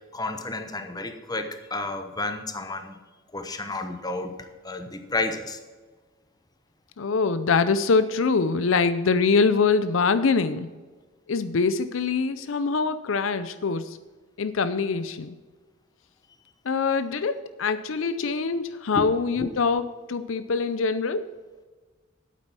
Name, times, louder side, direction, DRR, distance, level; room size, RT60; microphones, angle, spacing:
voice 1, 0.1-2.9 3.3-4.3 4.6-5.6 18.9-19.1 19.4-19.5, left 2 dB, 20° left, 7 dB, 0.9 m, -31 dB
voice 2, 7.0-10.7 11.3-14.0 14.4-15.4 16.7-21.3, left 4 dB, 65° left, 12 dB, 0.5 m, -24 dB
8.8 x 8.4 x 6.2 m, 1.4 s
head